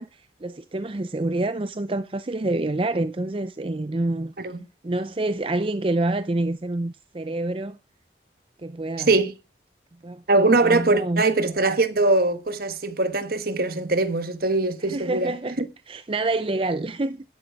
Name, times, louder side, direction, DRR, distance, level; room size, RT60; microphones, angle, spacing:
voice 1, 0.0-4.3 4.8-7.8 8.6-9.1 10.0-10.2 10.6-11.2 14.8-15.6 15.9-17.2, right 2 dB, 30° right, 0.6 m, -27 dB
voice 2, 10.3-15.7, right 2 dB, 55° right, 1.3 m, -22 dB
12.0 x 11.0 x 4.7 m
head